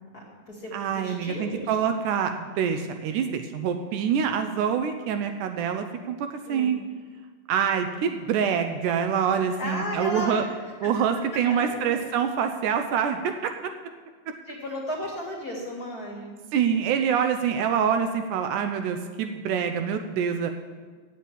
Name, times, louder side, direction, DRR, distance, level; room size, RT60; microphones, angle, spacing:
voice 1, 0.0-1.7 6.5-6.7 9.6-10.4 10.8-10.9 11.5-12.0 14.5-16.4, equal, 35° left, -3 dB, 1.9 m, -34 dB
voice 2, 0.7-6.8 7.5-10.4 10.8-13.7 16.5-20.5, right 7 dB, 80° right, 6 dB, 2.0 m, -26 dB
8.5 x 7.4 x 8.8 m, 1.5 s
omnidirectional pair, 3.8 m